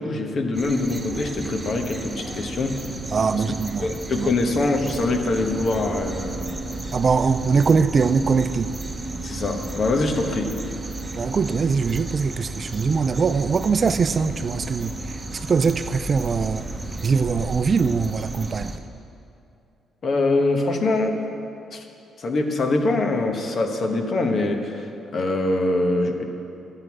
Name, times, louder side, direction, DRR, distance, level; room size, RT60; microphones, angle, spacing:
voice 1, 0.0-2.9 3.3-3.4 3.8-6.5 9.2-10.6 20.0-21.2 21.7-21.8 22.2-26.2, left 2 dB, 50° left, 4 dB, 1.3 m, -24 dB
sound 1, 0.5-18.8, right 2 dB, 20° right, 1.0 m, -33 dB
voice 2, 3.1-3.9 4.1-4.3 6.9-8.7 11.2-16.7 17.0-18.8, right 5 dB, 40° right, 12 dB, 0.4 m, -22 dB
12.5 x 7.7 x 6.1 m, 2.7 s
cardioid pair, 90°, 0 cm